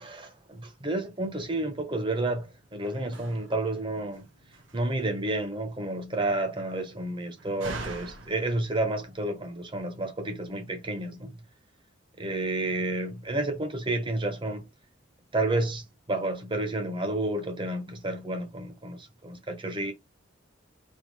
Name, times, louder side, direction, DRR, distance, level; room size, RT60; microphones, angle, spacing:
voice 1, 0.0-4.3 4.7-11.4 12.2-14.7 15.3-19.9, right 2 dB, 25° right, 1.0 m, -30 dB
Slam, 2.4-9.8, right 2 dB, 80° right, 1.2 m, -46 dB
3.7 x 3.0 x 4.8 m
head